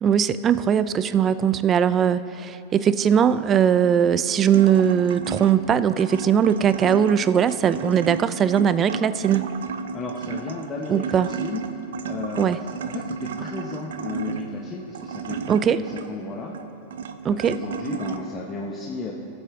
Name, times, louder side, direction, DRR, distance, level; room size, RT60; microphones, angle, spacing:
voice 1, 0.0-9.5 10.9-11.3 12.4-12.6 15.5-15.8 17.2-17.6, right 8 dB, 25° right, 14 dB, 0.3 m, -20 dB
sound 1, 3.9-18.2, right 6 dB, 85° right, 0.5 m, -33 dB
voice 2, 9.9-11.6 12.0-16.5 17.3-19.1, left 4 dB, 25° left, -2 dB, 0.8 m, -34 dB
14.5 x 7.7 x 3.5 m, 2.9 s
supercardioid pair, 135°, 0 cm